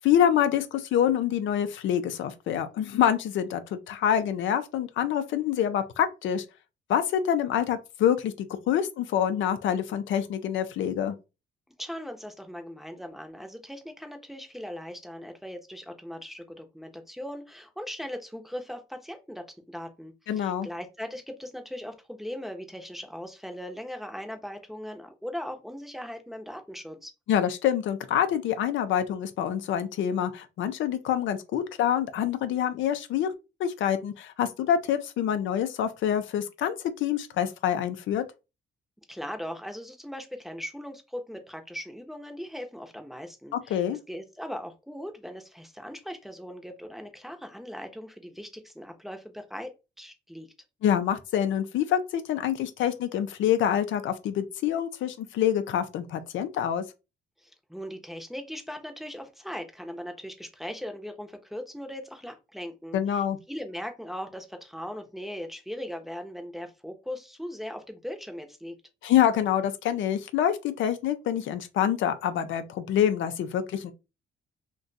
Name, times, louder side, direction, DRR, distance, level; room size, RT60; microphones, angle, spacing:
voice 1, 0.0-6.4 6.9-11.1 20.3-20.7 27.3-33.3 33.6-38.2 43.7-44.0 50.8-56.8 62.9-63.4 69.0-73.9, left 9 dB, 75° left, 0.5 m, -26 dB
voice 2, 11.8-27.1 39.1-49.7 50.0-50.5 57.4-68.8, equal, ahead, 0.7 m, -39 dB
2.5 x 2.3 x 3.9 m
cardioid pair, 90°, 20 cm